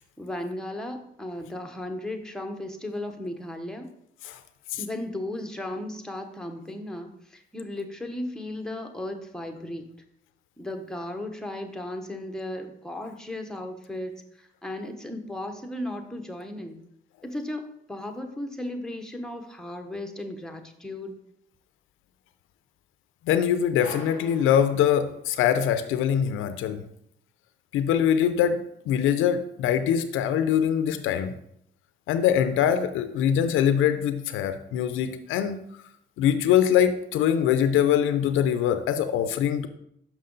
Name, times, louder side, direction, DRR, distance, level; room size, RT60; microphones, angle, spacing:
voice 1, 0.2-3.9 4.8-9.9 10.6-16.8 17.2-21.2, left 1 dB, 5° left, 5 dB, 0.9 m, -35 dB
voice 2, 23.3-26.8 27.7-28.6 28.9-31.3 32.1-35.6 36.2-39.7, left 9 dB, 90° left, 10 dB, 0.5 m, -23 dB
sound 1, 23.8-25.5, equal, 50° right, 2.5 m, -43 dB
6.1 x 5.5 x 3.8 m, 0.74 s
cardioid pair, 90°, 20 cm